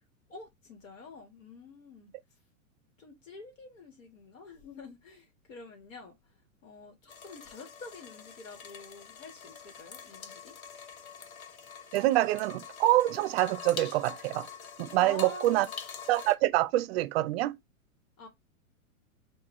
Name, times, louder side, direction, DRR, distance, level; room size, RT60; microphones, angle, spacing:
voice 1, 0.3-2.1 3.0-6.3 6.6-10.6 14.9-15.7 18.2-18.3, left 3 dB, 65° left, 1.6 m, -48 dB
sound 1, 7.1-16.3, left 7 dB, 85° left, 1.0 m, -45 dB
voice 2, 11.9-14.5 14.8-15.7 16.1-17.6, right 16 dB, 50° right, 0.6 m, -26 dB
6.2 x 2.3 x 3.1 m
hypercardioid pair, 115°, 41 cm